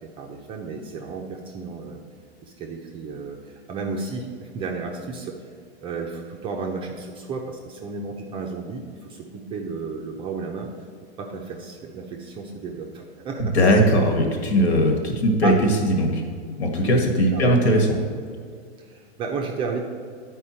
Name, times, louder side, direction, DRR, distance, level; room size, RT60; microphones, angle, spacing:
voice 1, 0.0-2.0 2.4-5.4 5.8-10.7 11.2-13.6 15.4-15.6 16.8-16.9 17.3-17.6 18.8-19.8, right 4 dB, 15° right, 1 dB, 0.5 m, -32 dB
voice 2, 13.4-15.5 15.8-16.2 16.6-17.9, equal, 70° left, 2 dB, 1.7 m, -19 dB
9.7 x 4.6 x 4.3 m, 2.1 s
hypercardioid pair, 140°, 33 cm